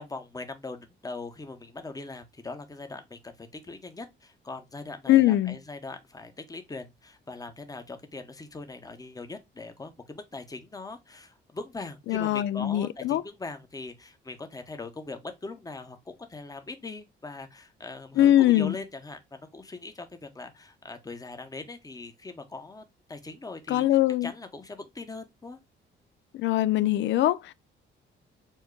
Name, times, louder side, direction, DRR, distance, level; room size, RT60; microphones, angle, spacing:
voice 1, 0.0-25.6, left 3 dB, 20° left, 0.9 m, -41 dB
voice 2, 5.1-5.6 12.1-13.2 18.2-18.8 23.7-24.3 26.3-27.5, left 13 dB, 70° left, 0.4 m, -22 dB
4.5 x 2.3 x 4.5 m
cardioid pair, 90°, 20 cm